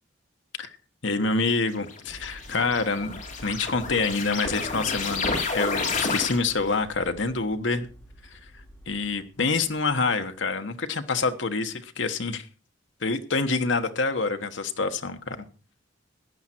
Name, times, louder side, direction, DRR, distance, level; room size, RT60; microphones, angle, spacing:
voice 1, 1.0-7.9 8.9-12.4 13.0-15.4, left 4 dB, 65° left, 8 dB, 1.3 m, -27 dB
sound 1, 1.8-6.7, left 4 dB, 40° left, 2.8 m, -30 dB
sound 2, 2.0-10.4, equal, 10° left, 4.2 m, -50 dB
15.0 x 10.0 x 4.5 m, 0.37 s
head